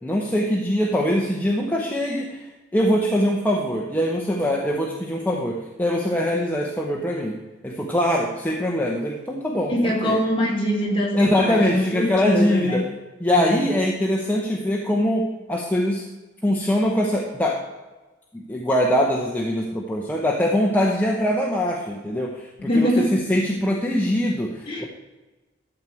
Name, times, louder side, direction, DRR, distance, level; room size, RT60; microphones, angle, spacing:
voice 1, 0.0-2.4 2.7-7.3 7.6-10.2 11.1-12.8 13.2-16.0 16.4-17.6 18.3-24.8, equal, 10° left, -1 dB, 1.0 m, -23 dB
voice 2, 9.7-12.9 13.3-13.5 22.6-23.2 24.7-24.9, left 1 dB, 30° left, -3 dB, 2.7 m, -23 dB
12.5 x 7.7 x 4.5 m, 1.2 s
head